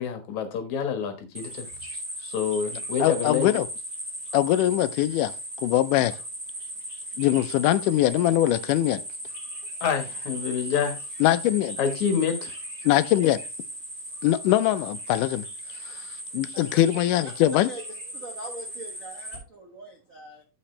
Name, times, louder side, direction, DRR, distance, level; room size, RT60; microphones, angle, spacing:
voice 1, 0.0-1.7 2.2-3.5 9.8-11.0 11.8-12.5, left 7 dB, 65° left, 2.7 m, -27 dB
sound 1, 1.3-19.4, right 1 dB, 20° right, 4.2 m, -37 dB
voice 2, 3.0-3.7 4.3-5.3 5.6-6.1 7.2-9.0 11.2-11.8 12.9-13.4 14.2-15.5 15.9-16.0 16.3-17.7, left 14 dB, 85° left, 2.2 m, -22 dB
voice 3, 18.1-20.4, right 2 dB, 75° right, 0.7 m, -42 dB
8.7 x 8.1 x 3.2 m
omnidirectional pair, 3.6 m